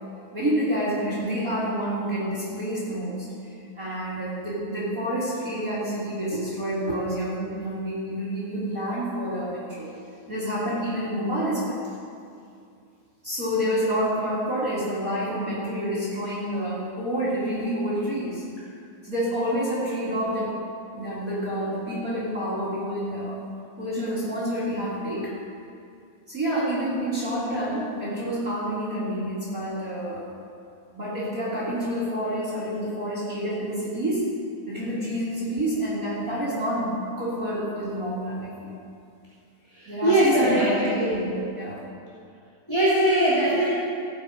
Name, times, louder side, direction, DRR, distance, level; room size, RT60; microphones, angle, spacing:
voice 1, 0.3-3.3 3.7-9.9 10.3-11.8 13.2-18.4 19.0-20.5 20.9-23.4 23.8-25.3 26.3-30.2 30.9-34.2 34.7-38.7 39.8-41.8, equal, 30° right, -8 dB, 1.6 m, -28 dB
voice 2, 39.7-41.2 42.7-43.7, right 1 dB, 10° left, -12 dB, 1.6 m, -21 dB
17.0 x 8.0 x 5.0 m, 2.4 s
omnidirectional pair, 5.4 m